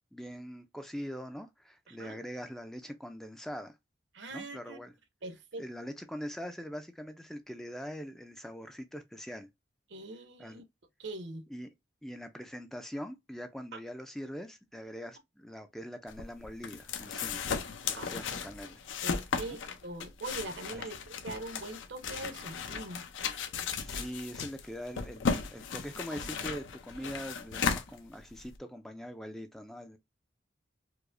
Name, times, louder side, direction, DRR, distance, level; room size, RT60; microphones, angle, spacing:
voice 1, 0.1-3.7 4.3-4.9 5.6-9.5 10.4-10.6 11.5-11.7 12.0-17.4 17.8-18.8 20.7-20.8 23.8-30.0, equal, ahead, 0.3 m, -42 dB
voice 2, 1.9-2.2 4.1-4.8 5.2-5.6 9.9-10.6 11.0-11.4 13.7-13.8 18.0-18.4 19.0-23.0, right 2 dB, 75° right, 0.8 m, -42 dB
sound 1, 16.1-28.6, left 5 dB, 85° left, 0.6 m, -36 dB
4.7 x 2.0 x 2.5 m
head